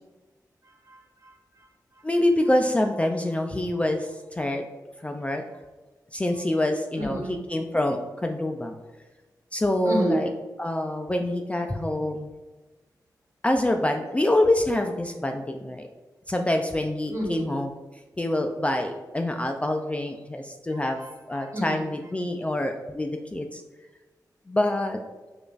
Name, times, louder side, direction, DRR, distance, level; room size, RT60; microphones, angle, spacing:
voice 1, 0.6-2.0 7.0-7.4 9.8-10.2 17.1-17.5 20.7-21.8, right 1 dB, 45° right, -3 dB, 1.1 m, -32 dB
voice 2, 2.0-4.6 5.0-5.4 6.1-8.7 9.5-10.3 10.6-12.3 13.4-15.9 16.3-17.7 18.2-21.0 21.3-23.6 24.5-25.0, left 1 dB, 15° left, 4 dB, 0.3 m, -26 dB
4.9 x 2.5 x 2.3 m, 1.2 s
cardioid pair, 55°, 7 cm